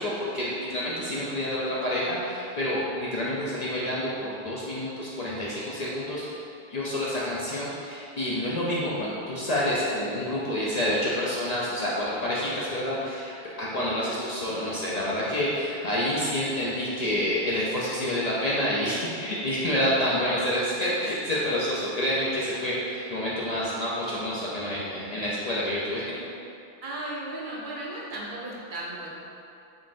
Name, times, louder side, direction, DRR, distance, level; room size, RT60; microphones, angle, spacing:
voice 1, 0.0-6.4 6.7-13.3 13.6-26.2, left 1 dB, 55° left, -7 dB, 0.5 m, -28 dB
voice 2, 20.2-20.5 26.8-29.1, right 1 dB, 60° right, -4 dB, 0.7 m, -36 dB
3.8 x 3.6 x 2.5 m, 2.6 s
omnidirectional pair, 1.1 m